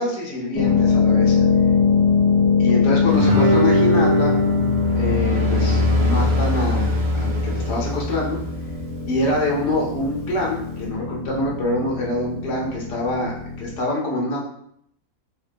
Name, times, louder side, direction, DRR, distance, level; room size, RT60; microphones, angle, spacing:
voice 1, 0.0-1.4 2.6-4.4 5.0-8.4 9.1-14.4, left 1 dB, 75° left, -3 dB, 1.4 m, -25 dB
sound 1, 0.5-13.8, left 5 dB, 25° left, 0.5 m, -22 dB
Guitar, 3.1-8.2, right 3 dB, 60° right, 0.5 m, -25 dB
sound 2, 4.4-9.0, left 1 dB, 80° right, 1.2 m, -23 dB
3.5 x 2.2 x 2.5 m, 0.71 s
omnidirectional pair, 1.8 m